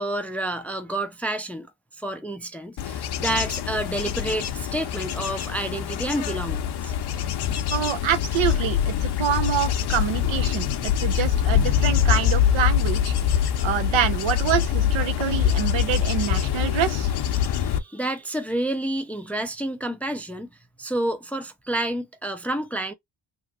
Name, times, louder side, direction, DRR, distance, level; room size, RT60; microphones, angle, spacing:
voice 1, 0.0-6.9 13.4-13.6 17.4-20.5 20.8-22.9, right 1 dB, 5° left, 0.4 m, -29 dB
Bird / Insect / Wind, 2.8-17.8, left 9 dB, 55° left, 0.6 m, -24 dB
voice 2, 7.7-13.1 13.6-17.1, right 9 dB, 75° right, 0.8 m, -26 dB
2.9 x 2.8 x 2.4 m
wide cardioid pair, 125°, 47 cm